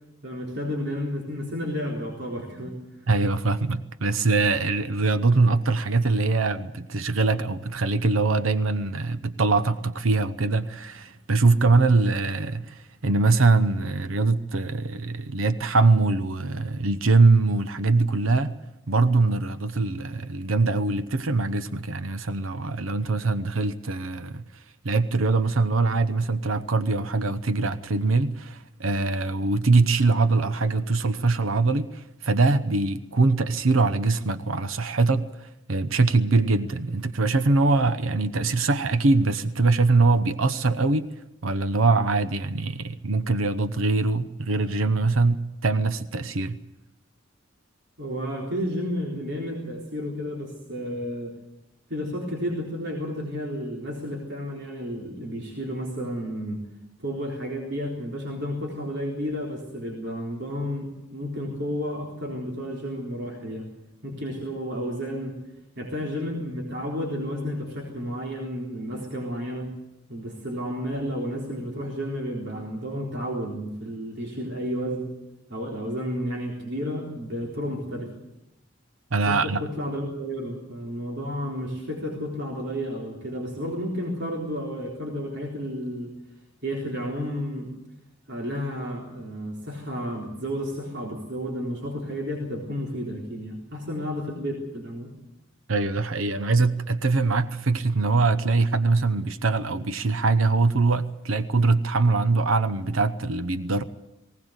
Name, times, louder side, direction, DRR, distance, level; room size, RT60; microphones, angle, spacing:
voice 1, 0.2-2.8 48.0-51.3 51.9-56.6 57.0-63.7 64.0-65.4 65.8-69.7 70.1-75.1 75.5-78.1 79.3-86.1 86.6-87.7 88.3-95.1, equal, 60° right, 3.9 m, -31 dB
voice 2, 3.1-18.6 18.9-24.4 24.8-41.1 41.4-46.6 79.1-79.6 95.7-103.8, right 3 dB, 85° right, 0.8 m, -23 dB
20.0 x 18.0 x 8.1 m
head